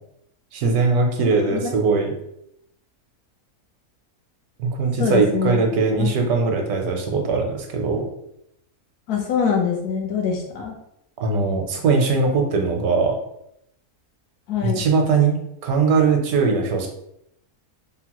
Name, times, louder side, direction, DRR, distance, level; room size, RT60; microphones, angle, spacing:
voice 1, 0.5-2.1 4.6-8.1 11.2-13.2 14.6-15.4 15.6-16.9, right 4 dB, 80° right, 2 dB, 1.1 m, -20 dB
voice 2, 5.0-5.6 6.0-6.1 9.1-10.7 14.5-14.9, left 6 dB, 85° left, 1 dB, 1.2 m, -23 dB
3.6 x 2.0 x 2.9 m, 0.77 s
omnidirectional pair, 1.6 m